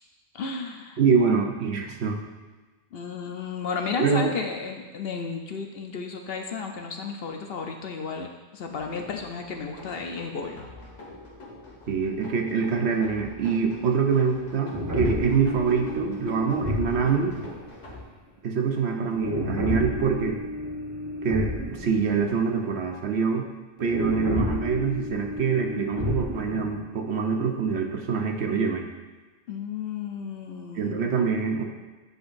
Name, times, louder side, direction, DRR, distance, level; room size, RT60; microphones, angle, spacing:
voice 1, 0.3-1.0 2.9-10.7 29.5-31.1, left 5 dB, 60° left, 3 dB, 0.8 m, -33 dB
voice 2, 1.0-2.2 4.0-4.3 11.9-17.3 18.4-20.4 21.2-23.5 23.8-28.8 30.7-31.6, right 5 dB, 65° right, 3 dB, 0.9 m, -25 dB
sound 1, 8.7-18.0, left 2 dB, 80° left, 1.9 m, -45 dB
sound 2, 14.7-18.0 19.1-22.3 22.6-22.7 23.8-26.8, left 1 dB, 20° right, 0.7 m, -31 dB
9.3 x 5.2 x 2.5 m, 1.3 s
omnidirectional pair, 1.2 m